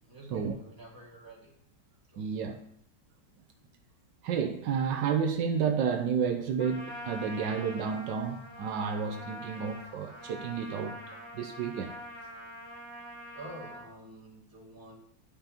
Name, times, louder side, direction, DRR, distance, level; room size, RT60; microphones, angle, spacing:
voice 1, 0.0-1.5 2.1-2.6 13.3-14.9, right 1 dB, 10° right, 2.3 m, -48 dB
voice 2, 2.2-2.5 4.2-11.0 11.3-11.9, right 6 dB, 80° right, 1.3 m, -31 dB
Trumpet, 6.6-13.9, equal, 20° left, 0.9 m, -45 dB
12.0 x 5.4 x 2.9 m
omnidirectional pair, 1.9 m